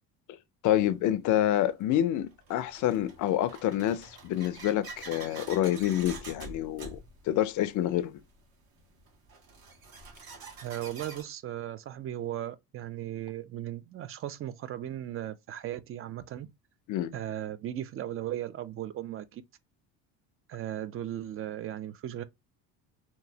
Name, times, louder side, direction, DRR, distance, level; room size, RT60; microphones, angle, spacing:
voice 1, 0.6-8.2 16.9-17.1, left 12 dB, 45° left, 0.5 m, -28 dB
sound 1, 0.9-1.0 1.8-11.2, right 3 dB, 50° right, 1.2 m, -47 dB
voice 2, 10.6-16.5 17.1-19.4 20.5-22.2, right 12 dB, 30° right, 0.4 m, -37 dB
2.9 x 2.4 x 2.7 m
supercardioid pair, 85°, 45 cm